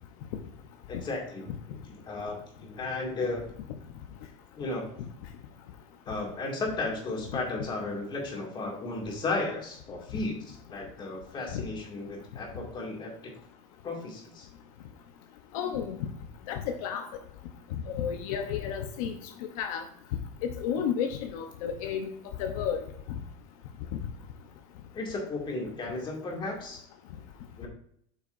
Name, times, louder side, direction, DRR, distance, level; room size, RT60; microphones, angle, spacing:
voice 1, 0.9-1.5 2.0-3.4 4.6-4.8 6.1-13.1 13.8-14.5 24.9-26.8 27.6-27.7, left 2 dB, 25° left, 0 dB, 2.4 m, -34 dB
voice 2, 15.5-16.0 16.5-17.1 17.9-19.2 19.6-19.8 20.4-22.1 22.4-22.8, left 8 dB, 75° left, 5 dB, 0.9 m, -31 dB
8.4 x 5.8 x 2.6 m, 0.67 s
supercardioid pair, 150°, 18 cm